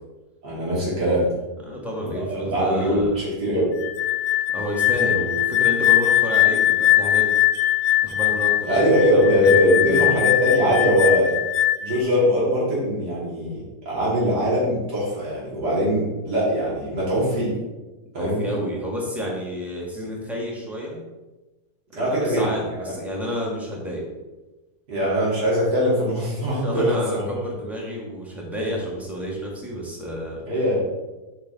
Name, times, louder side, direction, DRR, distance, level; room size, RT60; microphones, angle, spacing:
voice 1, 0.4-1.2 2.1-3.8 8.7-11.3 11.8-17.5 18.1-18.4 21.9-22.5 24.9-27.3 30.5-30.8, equal, 90° right, -7 dB, 3.2 m, -21 dB
voice 2, 1.6-3.2 4.5-7.3 8.0-9.5 9.8-10.1 18.2-21.0 22.0-24.0 26.5-30.4, equal, ahead, -3 dB, 1.5 m, -30 dB
sound 1, 3.8-12.0, left 13 dB, 75° left, 1.1 m, -21 dB
6.8 x 5.6 x 4.0 m, 1.1 s
omnidirectional pair, 1.7 m